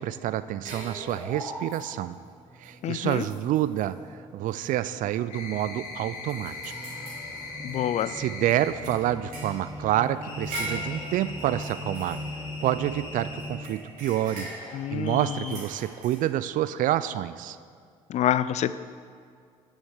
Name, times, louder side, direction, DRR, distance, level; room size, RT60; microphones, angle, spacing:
voice 1, 0.0-2.2 2.6-4.0 4.3-6.6 8.1-12.2 12.6-14.5 14.9-17.6, right 13 dB, 50° right, 14 dB, 0.4 m, -28 dB
sound 1, 0.6-2.1 2.6-2.7 3.0-3.9 4.5-4.7 5.0-5.1 5.6-8.0 8.5-12.9 13.4-16.2, right 1 dB, 75° right, 2.3 m, -41 dB
sound 2, 1.9-13.8, left 1 dB, 15° right, 0.7 m, -41 dB
voice 2, 2.8-3.2 7.6-8.1 14.7-15.3 18.1-18.7, left 11 dB, 40° left, 14 dB, 0.4 m, -26 dB
sound 3, 5.3-8.7 10.2-13.5 15.0-15.5, left 3 dB, 75° left, 1.7 m, -40 dB
6.4 x 6.3 x 6.5 m, 2.2 s
hypercardioid pair, 55°, 17 cm